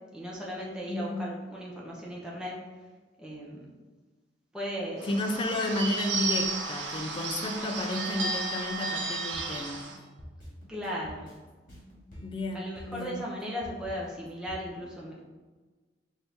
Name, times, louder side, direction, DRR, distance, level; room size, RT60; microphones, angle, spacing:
voice 1, 0.1-2.6 3.2-3.7 4.5-5.1 10.7-11.4 12.5-15.2, equal, 5° right, -4 dB, 0.8 m, -37 dB
voice 2, 0.9-1.3 5.0-9.9 12.2-13.2, left 1 dB, 25° left, 4 dB, 0.3 m, -32 dB
Bird / Bell, 5.0-10.0, right 3 dB, 70° right, 0.6 m, -33 dB
sound 1, 9.3-14.6, equal, 50° left, 1.5 m, -47 dB
4.4 x 2.7 x 3.3 m, 1.3 s
head